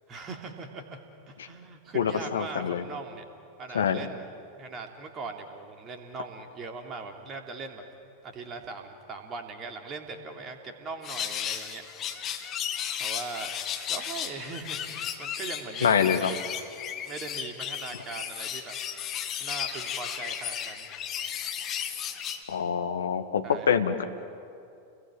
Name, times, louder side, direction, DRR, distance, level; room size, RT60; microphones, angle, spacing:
voice 1, 0.1-1.0 1.3-3.2 3.6-4.2 4.6-7.8 8.2-11.8 13.0-13.5 13.9-16.4 17.1-18.7 19.4-20.9 23.4-23.7, right 4 dB, 30° right, 4 dB, 3.1 m, -40 dB
voice 2, 1.9-2.8 3.7-4.0 15.8-16.3 22.5-24.0, left 7 dB, 65° left, 8 dB, 1.5 m, -25 dB
sound 1, 11.0-22.4, left 9 dB, 30° left, 1.8 m, -34 dB
29.5 x 21.5 x 9.1 m, 2.6 s
figure-of-eight pair, 90°, 0 cm